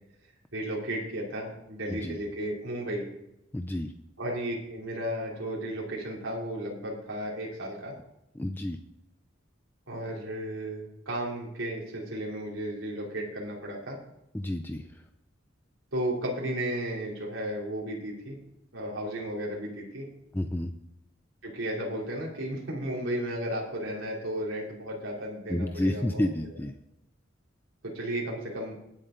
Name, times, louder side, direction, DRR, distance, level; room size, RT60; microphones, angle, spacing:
voice 1, 0.5-3.0 4.2-7.9 9.9-14.0 15.9-18.4 18.7-20.0 21.4-26.2 27.8-28.8, right 1 dB, 90° right, -3 dB, 3.3 m, -34 dB
voice 2, 3.5-3.9 8.3-8.8 14.3-15.0 20.3-20.7 25.5-26.7, left 1 dB, 10° left, 6 dB, 0.5 m, -30 dB
19.0 x 7.7 x 3.9 m, 0.84 s
head